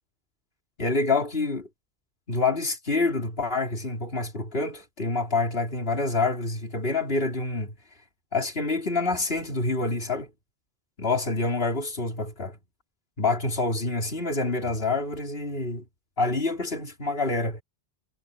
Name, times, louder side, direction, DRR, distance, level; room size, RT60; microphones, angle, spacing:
voice 1, 0.8-1.7 2.3-7.7 8.3-10.3 11.0-12.6 13.2-15.8 16.2-17.6, left 3 dB, 60° left, 4.0 m, -27 dB
omnidirectional pair, 1.1 m